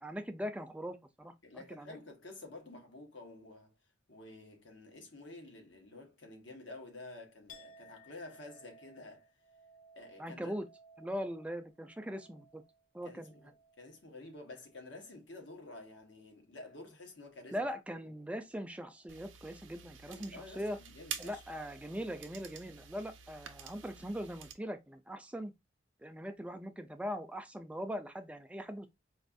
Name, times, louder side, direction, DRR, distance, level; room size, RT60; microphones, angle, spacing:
voice 1, 0.0-2.0 10.2-10.7 11.0-12.6 12.9-13.4 17.5-20.8 21.2-25.5 26.0-28.9, equal, 5° right, 0.4 m, -41 dB
voice 2, 1.4-3.7 4.1-9.3 9.9-10.5 13.0-13.5 13.8-18.0 20.1-21.4, left 2 dB, 65° left, 1.1 m, -50 dB
Chink clink, 7.5-15.2 15.5-16.2, equal, 45° left, 0.6 m, -60 dB
sound 1, 19.1-24.5, right 8 dB, 75° right, 0.6 m, -48 dB
4.3 x 2.4 x 2.5 m
head